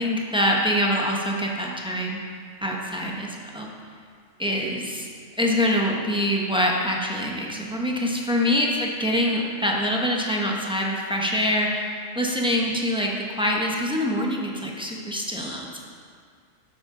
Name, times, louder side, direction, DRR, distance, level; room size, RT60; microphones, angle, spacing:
voice 1, 0.0-2.2 2.6-3.7 4.4-5.1 5.4-15.8, left 1 dB, 5° right, -2 dB, 0.8 m, -25 dB
11.5 x 7.4 x 3.8 m, 2.2 s
omnidirectional pair, 1.4 m